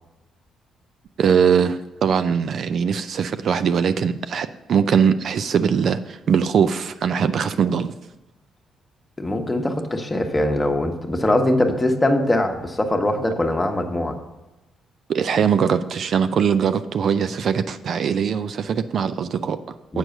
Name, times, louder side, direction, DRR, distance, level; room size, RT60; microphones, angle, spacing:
voice 1, 1.2-7.9 15.1-20.0, right 7 dB, 60° right, 11 dB, 0.4 m, -21 dB
voice 2, 9.2-14.2 19.9-20.0, left 1 dB, 20° left, 4 dB, 1.1 m, -22 dB
7.9 x 4.6 x 6.5 m, 1.0 s
cardioid pair, 90°, 0 cm